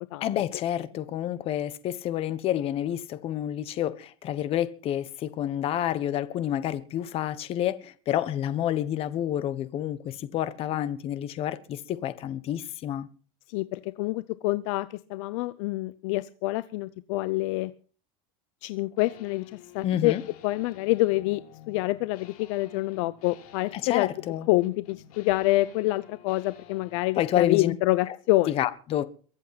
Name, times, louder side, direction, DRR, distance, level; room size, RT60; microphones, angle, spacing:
voice 1, 0.2-13.1 19.8-20.2 23.7-24.5 27.2-27.7 28.1-28.2 28.5-29.0, left 11 dB, 30° left, 1.2 m, -29 dB
voice 2, 13.5-17.7 18.6-20.1 20.4-24.1 24.5-28.5, left 19 dB, 55° left, 0.7 m, -27 dB
sound 1, 19.0-27.7, left 10 dB, 85° left, 5.8 m, -51 dB
23.0 x 8.3 x 5.9 m
supercardioid pair, 165°, 19 cm